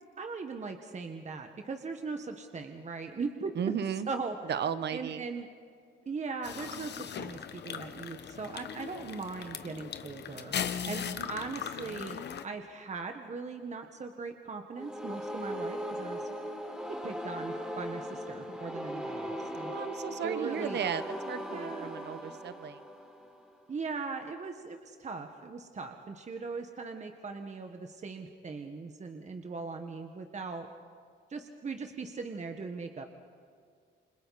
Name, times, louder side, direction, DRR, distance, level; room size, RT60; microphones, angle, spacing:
voice 1, 0.2-3.5 4.1-4.3 4.9-5.5 6.0-10.5 10.9-16.3 17.0-19.7 20.2-20.8 21.5-21.9 23.7-30.7 31.3-33.1, right 4 dB, 35° right, 5 dB, 1.6 m, -39 dB
voice 2, 3.6-4.1 4.5-5.2 10.8-11.3 19.6-22.8, right 8 dB, 60° right, 12 dB, 1.1 m, -35 dB
sound 1, 6.4-12.4, left 8 dB, 60° left, 1.2 m, -38 dB
sound 2, 14.8-23.6, equal, 5° right, 3.7 m, -39 dB
29.5 x 25.5 x 4.3 m, 2.2 s
cardioid pair, 90°, 20 cm